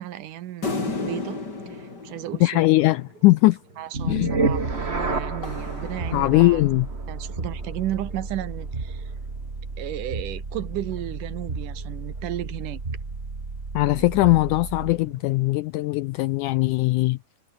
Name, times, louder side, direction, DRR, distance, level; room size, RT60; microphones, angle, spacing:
voice 1, 0.0-1.4 1.7-2.6 3.8-6.6 7.1-9.1 9.8-12.8, right 13 dB, 70° right, 2.6 m, -34 dB
sound 1, 0.6-3.3 4.7-6.8, left 3 dB, 25° left, 5.0 m, -34 dB
sound 2, 2.0-2.1 2.5-13.1 14.4-15.4, right 2 dB, 35° right, 8.9 m, -53 dB
voice 2, 2.4-3.6 4.1-4.3 6.1-6.9 13.7-17.2, left 19 dB, 85° left, 1.8 m, -20 dB
sound 3, 3.9-15.1, right 3 dB, 20° right, 2.3 m, -31 dB
omnidirectional pair, 4.1 m